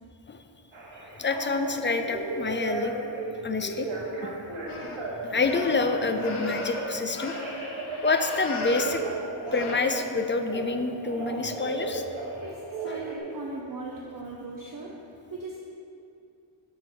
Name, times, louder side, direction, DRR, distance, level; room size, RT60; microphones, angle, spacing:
Telephone, 0.7-3.2 3.6-5.1 5.4-7.0 7.3-10.7 11.0-13.2, right 2 dB, 70° right, 1.6 m, -35 dB
voice 1, 1.2-2.9 3.4-3.9 4.2-4.3 5.3-7.4 8.0-9.0 9.5-12.0 12.9-13.0, left 3 dB, 25° left, 7 dB, 0.4 m, -27 dB
sound 1, 4.7-9.0 9.4-9.8, left 2 dB, 80° left, 0.9 m, -36 dB
voice 2, 12.4-14.9 15.3-15.6, right 3 dB, 45° right, -3 dB, 0.7 m, -38 dB
6.4 x 4.4 x 6.0 m, 2.6 s
wide cardioid pair, 95°, 48 cm